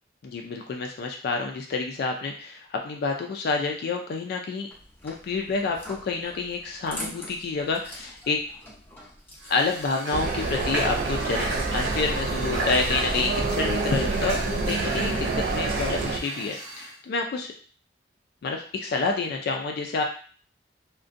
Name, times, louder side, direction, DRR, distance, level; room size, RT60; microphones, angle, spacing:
voice 1, 0.2-4.7 5.0-8.4 9.5-11.5 11.7-17.5 18.4-20.0, left 4 dB, 60° left, 2 dB, 0.3 m, -28 dB
sound 1, 4.7-9.9, equal, 10° left, 0.6 m, -43 dB
Water / Water tap faucet, 9.4-16.9, right 2 dB, 80° right, 0.9 m, -34 dB
sound 2, 10.1-16.2, right 3 dB, 50° right, 0.3 m, -27 dB
2.5 x 2.1 x 2.4 m, 0.43 s
head